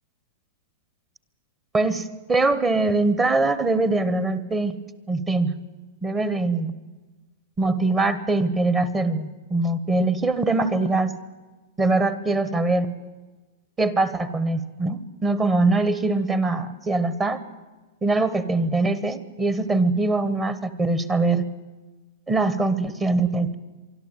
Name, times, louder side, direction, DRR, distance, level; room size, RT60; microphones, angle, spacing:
voice 1, 1.7-4.8 5.1-5.6 6.0-6.7 7.6-11.1 11.8-12.9 13.8-17.4 18.0-21.4 22.3-23.6, right 2 dB, 15° right, 14 dB, 1.2 m, -22 dB
24.5 x 13.0 x 9.0 m, 1.2 s
supercardioid pair, 155°, 0 cm